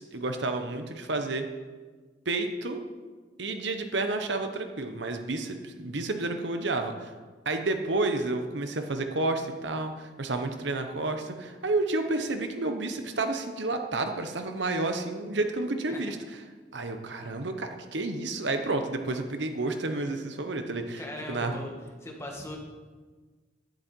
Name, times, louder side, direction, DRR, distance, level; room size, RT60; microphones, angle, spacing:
voice 1, 0.0-1.5 2.2-2.8 3.4-7.1 7.4-16.2 16.7-21.6, right 2 dB, 70° right, 6 dB, 1.1 m, -30 dB
voice 2, 21.0-21.7 22.0-22.6, left 1 dB, 15° left, 0 dB, 2.0 m, -39 dB
12.0 x 11.0 x 4.6 m, 1.4 s
head